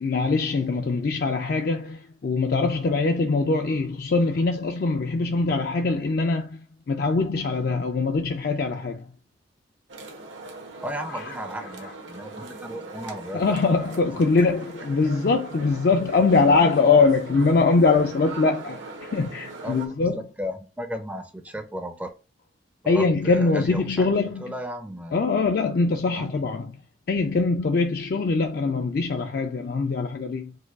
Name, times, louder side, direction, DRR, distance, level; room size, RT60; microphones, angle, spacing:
voice 1, 0.0-6.6 6.9-9.0 11.1-11.3 13.3-20.2 22.9-24.4 25.1-26.8 27.1-30.5, left 4 dB, 50° left, 0.4 m, -22 dB
sound 1, 9.9-19.9, right 3 dB, 80° right, 1.2 m, -41 dB
voice 2, 10.8-14.3 19.6-22.1 22.8-24.1 24.4-25.2 26.1-26.4, equal, 10° right, 0.4 m, -35 dB
4.6 x 2.3 x 4.6 m
head